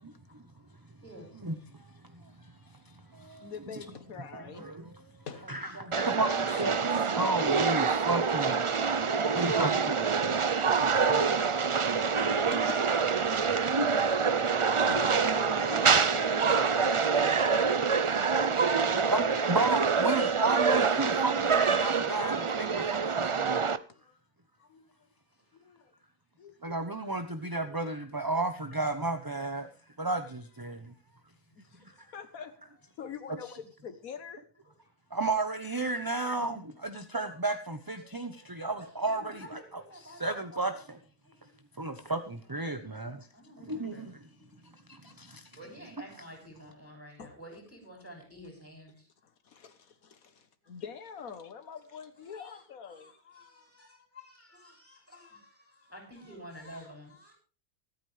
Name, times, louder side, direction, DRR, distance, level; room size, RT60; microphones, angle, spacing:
voice 1, 0.1-1.5 3.3-3.5 5.4-6.7 11.3-11.4 18.8-19.3 25.4-25.5 29.6-29.7 31.5-31.6 34.6-34.7 35.7-35.8 36.1-36.5 37.0-37.4 38.0-40.8 41.2-41.5 42.8-45.1 45.5-49.1 50.6-50.7 52.2-57.3, equal, 10° left, 6.6 m, -51 dB
voice 2, 1.4-1.9 2.1-2.5 2.9-3.8 4.3-4.9 5.5-5.7 6.0-8.7 9.3-9.9 14.0-14.4 18.1-18.3 19.0-23.6 26.6-29.7 30.0-30.9 35.1-39.6 40.1-40.7 41.8-43.3 43.7-44.1 44.9-45.4, right 2 dB, 20° right, 0.8 m, -33 dB
voice 3, 3.4-4.7 5.3-5.5 11.3-11.4 12.5-13.2 13.8-17.7 22.9-23.0 23.4-23.5 23.9-24.2 24.6-24.9 25.5-25.9 26.4-26.6 27.0-27.1 27.6-27.7 31.7-31.8 32.1-32.5 33.0-34.4 45.0-45.2 47.2-47.4 49.4-53.2, left 6 dB, 75° left, 1.5 m, -44 dB
sound 1, 5.9-23.8, right 5 dB, 50° right, 0.3 m, -26 dB
24.0 x 9.0 x 3.3 m
omnidirectional pair, 1.5 m